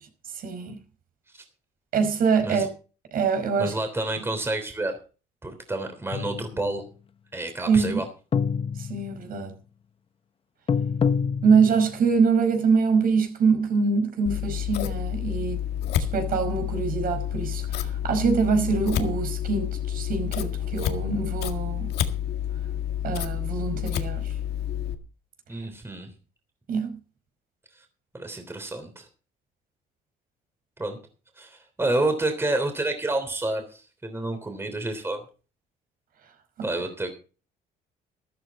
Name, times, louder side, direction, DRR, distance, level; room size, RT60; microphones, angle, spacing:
voice 1, 0.3-0.8 1.9-2.7 3.1-3.8 7.7-8.0 8.8-9.5 11.4-15.6 16.1-21.9 23.0-24.3 26.7-26.9, right 5 dB, 60° right, 5.0 m, -24 dB
voice 2, 3.6-5.0 5.4-6.8 7.3-8.1 25.5-26.1 28.1-29.1 30.8-31.0 31.4-35.2 36.6-37.1, right 2 dB, 15° right, 3.3 m, -29 dB
sound 1, 6.1-6.7 8.3-9.3 10.7-12.0, left 6 dB, 30° left, 0.9 m, -26 dB
Scissors, 14.3-24.9, left 10 dB, 75° left, 1.9 m, -29 dB
13.5 x 13.0 x 4.2 m
cardioid pair, 110°, 17 cm